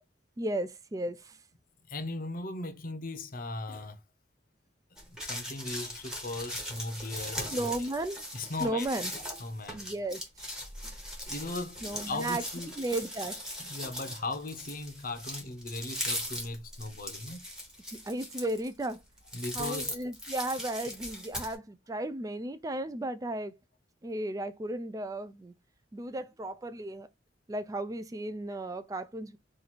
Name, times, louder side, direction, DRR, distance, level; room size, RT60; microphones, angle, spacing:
voice 1, 0.4-1.4 7.5-8.2 8.6-9.1 9.7-10.2 11.8-12.4 12.8-13.4 17.9-19.0 19.5-23.5 24.0-25.5 25.9-27.1 27.5-29.4, right 1 dB, 20° right, 0.3 m, -34 dB
voice 2, 1.9-4.0 4.9-7.7 8.3-8.9 9.4-9.9 11.3-12.8 13.6-17.4 19.3-19.9, left 2 dB, 50° left, 0.7 m, -38 dB
sound 1, 5.0-21.5, equal, 5° right, 1.0 m, -39 dB
3.0 x 2.5 x 4.1 m
head